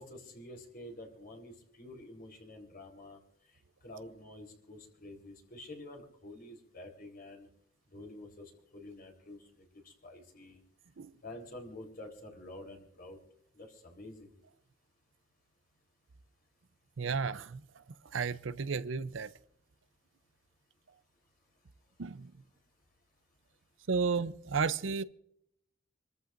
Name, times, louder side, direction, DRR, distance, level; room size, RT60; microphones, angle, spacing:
voice 1, 0.0-3.2 3.8-7.5 7.9-10.6 11.2-13.2 13.5-14.3, left 1 dB, 50° left, 4.0 m, -49 dB
voice 2, 17.0-17.8 18.1-19.3 22.0-22.3 23.9-25.0, right 5 dB, 75° right, 0.6 m, -33 dB
28.0 x 14.0 x 2.6 m
head